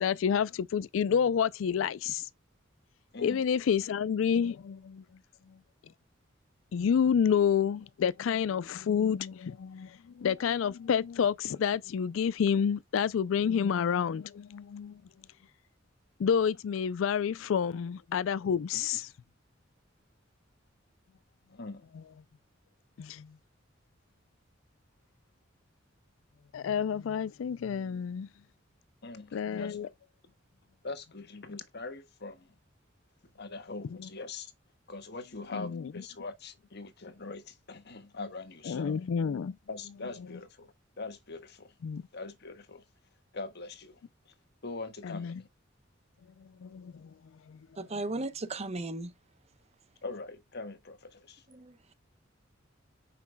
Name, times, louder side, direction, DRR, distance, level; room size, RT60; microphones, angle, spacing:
voice 1, 0.0-2.3 3.2-5.0 6.7-15.0 16.2-19.1 23.0-23.3 26.5-28.3 29.3-29.9 34.0-34.1 35.5-35.9 38.7-39.6 41.8-42.0 45.0-45.4 46.4-47.1 47.5-47.6, left 7 dB, 90° left, 0.4 m, -29 dB
voice 2, 21.5-21.8 29.0-29.8 30.8-32.5 33.4-34.5 34.9-39.0 39.7-41.7 42.1-42.8 43.3-44.0 44.3-44.4 44.6-45.4 50.0-51.4, left 3 dB, 60° left, 1.4 m, -42 dB
voice 3, 47.8-49.1 51.5-51.9, right 2 dB, 35° right, 0.8 m, -36 dB
8.4 x 6.0 x 2.2 m
head